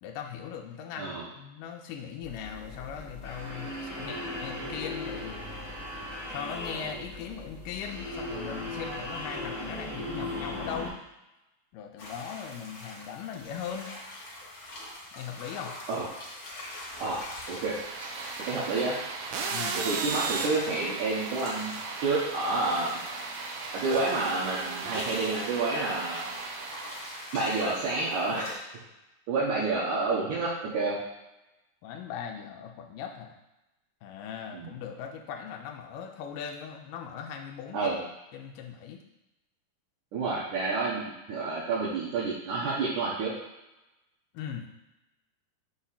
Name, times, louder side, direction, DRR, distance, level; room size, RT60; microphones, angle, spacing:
voice 1, 0.0-5.4 6.3-11.0 11.7-13.9 15.2-15.7 19.5-19.8 31.8-33.4 34.0-37.9 38.3-39.0 44.3-44.7, left 8 dB, 80° left, 2 dB, 2.2 m, -39 dB
sound 1, 2.2-10.9, left 1 dB, ahead, 0.8 m, -37 dB
sound 2, 12.0-28.6, left 1 dB, 55° left, 1.5 m, -44 dB
sound 3, 17.4-27.6, right 4 dB, 85° right, 2.5 m, -36 dB
voice 2, 18.5-18.9 19.7-21.7 22.0-23.0 23.7-26.3 27.3-28.6 29.3-31.0 34.5-34.7 37.7-38.0 40.1-43.3, right 3 dB, 65° right, -7 dB, 2.2 m, -29 dB
6.5 x 3.0 x 5.7 m, 0.97 s
omnidirectional pair, 4.2 m